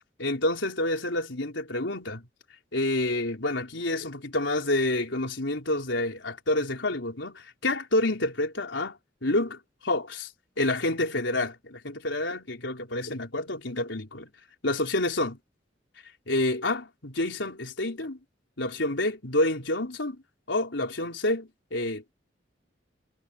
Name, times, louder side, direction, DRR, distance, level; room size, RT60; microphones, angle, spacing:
voice 1, 0.2-2.3 2.7-10.3 10.6-14.3 14.6-15.4 16.3-18.2 18.6-20.2 20.5-22.1, left 1 dB, 80° left, 4.2 m, -28 dB
head